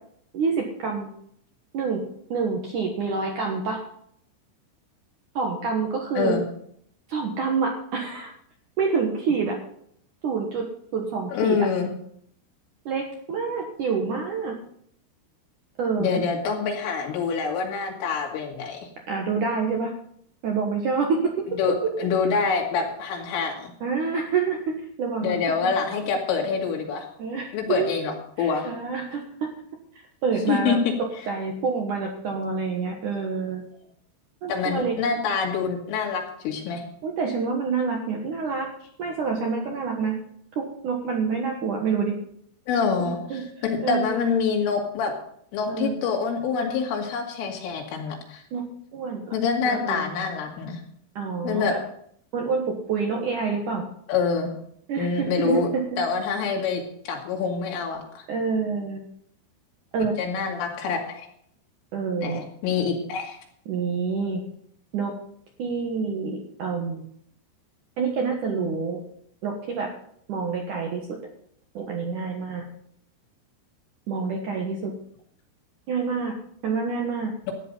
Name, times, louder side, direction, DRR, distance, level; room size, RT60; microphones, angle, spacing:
voice 1, 0.3-1.1 1.7-2.0 2.3-3.8 5.4-6.4 7.1-8.3 8.8-9.6 10.2-10.7 10.9-11.7 12.9-14.5 15.8-16.2 19.1-19.9 20.4-21.9 23.8-25.7 27.2-28.0 28.4-29.5 30.2-30.8 31.3-33.6 34.4-35.0 37.0-38.7 39.0-40.2 40.6-42.2 43.0-43.4 43.8-44.3 45.7-46.1 48.5-48.6 48.9-49.3 49.6-50.0 51.2-51.8 52.3-53.8 54.9-56.0 58.3-59.0 59.9-60.1 61.9-62.4 63.7-64.4 64.9-65.1 65.6-67.1 68.0-69.0 69.4-69.9 70.3-71.2 71.7-72.7 74.1-74.9 75.9-76.3 76.6-77.3, right 5 dB, 70° right, 1 dB, 1.9 m, -27 dB
voice 2, 11.3-11.9 16.0-18.8 21.5-23.7 25.2-27.1 27.5-28.7 30.5-30.9 34.5-36.8 42.7-45.1 45.5-48.4 49.3-50.8 51.4-51.8 54.1-54.5 55.0-55.7 56.0-58.3 60.2-61.3 62.2-63.4, left 5 dB, 90° left, 1 dB, 4.8 m, -26 dB
13.5 x 9.7 x 5.4 m, 0.68 s
omnidirectional pair, 5.6 m